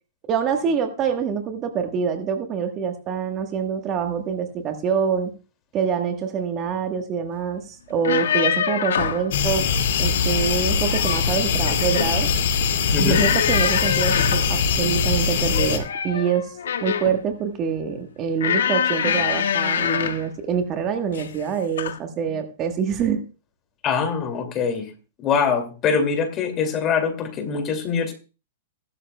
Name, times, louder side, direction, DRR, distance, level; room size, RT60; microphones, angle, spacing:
voice 1, 0.3-5.3 5.7-9.7 10.0-12.3 13.0-16.6 16.8-23.2, right 7 dB, 25° right, 5 dB, 1.2 m, -25 dB
sound 1, 7.9-9.3 10.7-11.3 11.7-12.2 13.1-14.5 15.5-17.2 18.4-20.3 21.1-21.4 21.8-22.0, left 8 dB, 90° left, 1.3 m, -25 dB
sound 2, 9.3-15.8, left 6 dB, 70° left, 2.3 m, -22 dB
voice 2, 12.9-13.2 23.8-24.9 25.2-28.1, left 6 dB, 25° left, 8 dB, 2.3 m, -23 dB
16.0 x 12.0 x 2.2 m, 0.33 s
hypercardioid pair, 150°, 0 cm